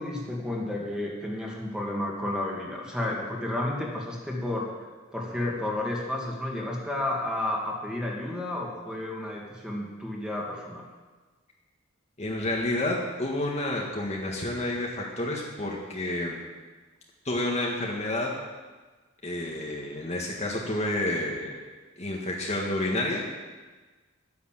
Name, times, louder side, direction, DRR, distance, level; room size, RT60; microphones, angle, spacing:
voice 1, 0.0-4.7 5.1-10.8, left 1 dB, 5° right, -2 dB, 2.5 m, -31 dB
voice 2, 12.2-16.4 17.2-18.4 19.2-21.6 22.0-23.3, left 1 dB, 35° left, -2 dB, 1.8 m, -29 dB
11.5 x 9.9 x 7.7 m, 1.3 s
head